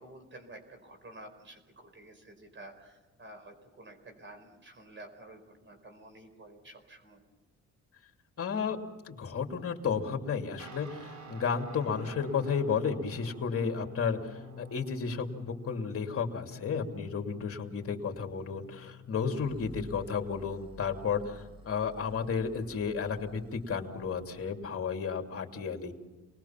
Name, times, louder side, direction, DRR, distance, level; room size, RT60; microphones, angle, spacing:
voice 1, 0.0-7.2, right 1 dB, 40° right, 6 dB, 4.8 m, -51 dB
voice 2, 8.4-8.8 9.1-25.9, left 6 dB, 50° left, 3 dB, 3.0 m, -33 dB
Guitar, 10.6-19.5, left 3 dB, 70° right, 3.6 m, -49 dB
sound 1, 19.3-24.6, left 1 dB, 15° right, 7.0 m, -52 dB
28.5 x 20.5 x 5.9 m, 1.2 s
cardioid pair, 115°, 29 cm